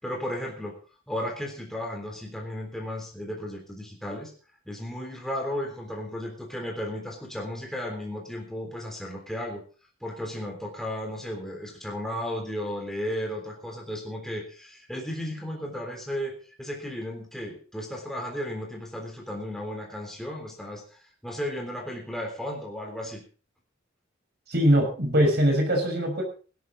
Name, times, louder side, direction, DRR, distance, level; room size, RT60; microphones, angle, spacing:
voice 1, 0.0-0.8 1.1-4.3 4.7-9.6 10.0-23.2, left 1 dB, ahead, 0 dB, 3.6 m, -34 dB
voice 2, 24.5-26.2, equal, 55° right, 4 dB, 6.2 m, -22 dB
16.5 x 13.0 x 4.1 m, 0.37 s
head